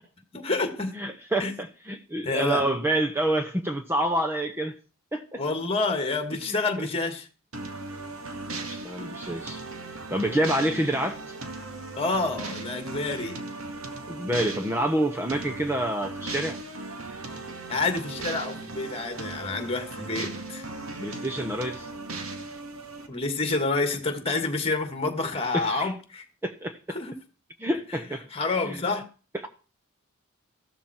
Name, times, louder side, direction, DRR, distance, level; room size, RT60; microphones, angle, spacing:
voice 1, 0.3-1.0 1.4-1.5 2.2-2.6 5.4-7.3 12.0-13.4 17.3-17.4 17.7-20.7 23.1-26.2 26.9-27.1 27.9-28.0 28.3-29.0, left 3 dB, 30° left, 2.2 m, -28 dB
voice 2, 0.9-4.8 5.1-5.4 8.7-9.6 10.1-11.2 14.1-16.6 21.0-21.9 25.5-25.9 26.4-27.0 27.6-28.3 28.6-28.8, right 1 dB, 10° right, 0.9 m, -27 dB
sound 1, 7.5-23.1, right 3 dB, 80° right, 2.1 m, -37 dB
14.5 x 13.0 x 4.6 m
head